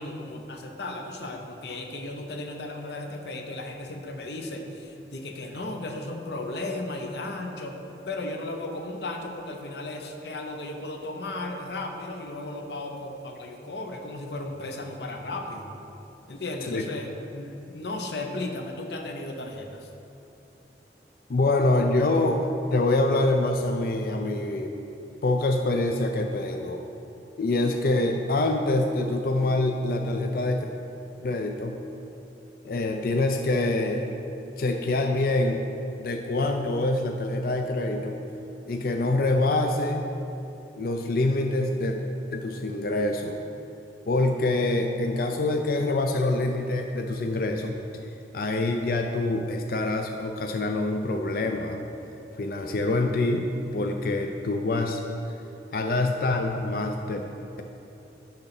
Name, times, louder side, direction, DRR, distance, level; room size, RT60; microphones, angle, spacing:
voice 1, 0.0-7.8 8.1-15.7 16.3-19.9, left 2 dB, 70° left, 3 dB, 0.8 m, -35 dB
voice 2, 21.3-24.7 25.2-26.8 27.4-30.7 31.2-31.8 32.6-34.1 34.6-35.6 36.0-38.2 38.7-40.0 40.8-42.0 42.3-43.4 44.1-47.8 48.3-51.8 52.4-55.4 55.7-57.2, left 2 dB, 55° left, 4 dB, 0.4 m, -25 dB
9.8 x 4.0 x 5.9 m, 2.9 s
head